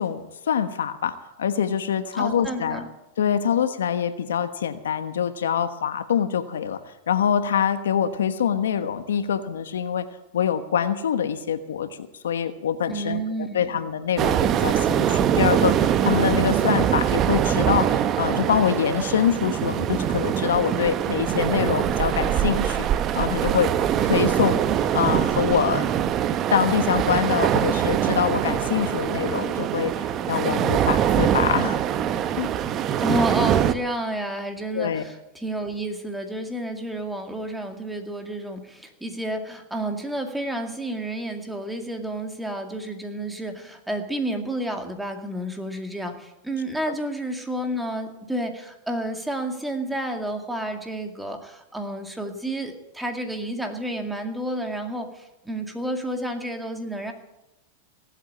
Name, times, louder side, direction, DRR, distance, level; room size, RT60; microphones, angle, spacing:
voice 1, 0.0-2.8 3.2-6.8 7.1-10.1 10.3-17.9 18.2-22.9 23.1-23.7 24.0-24.6 24.9-25.9 26.5-31.8 32.4-32.5 34.7-35.0 46.9-47.0, left 8 dB, 90° left, 10 dB, 1.2 m, -25 dB
voice 2, 2.1-2.8 12.9-13.7 33.0-57.1, right 1 dB, 5° right, 4 dB, 2.1 m, -30 dB
sound 1, 14.2-33.7, right 10 dB, 35° right, 0.8 m, -23 dB
18.0 x 8.4 x 8.7 m, 0.96 s
hypercardioid pair, 120°, 0 cm